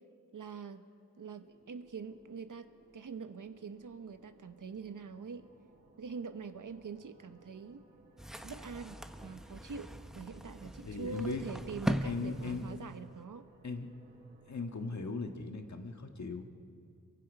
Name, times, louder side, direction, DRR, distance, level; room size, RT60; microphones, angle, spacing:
voice 1, 0.3-0.8 1.2-2.7 2.9-5.5 6.0-7.8 8.4-13.5, right 5 dB, 75° right, 9 dB, 1.1 m, -44 dB
sound 1, 1.4-15.0, right 2 dB, 55° right, 6.9 m, -63 dB
sound 2, 8.2-13.2, equal, ahead, 0.9 m, -40 dB
voice 2, 10.9-11.4 12.0-12.7 13.6-13.9 14.5-16.4, left 4 dB, 60° left, 5 dB, 1.6 m, -38 dB
27.5 x 23.5 x 5.5 m, 2.5 s
wide cardioid pair, 115°, 32 cm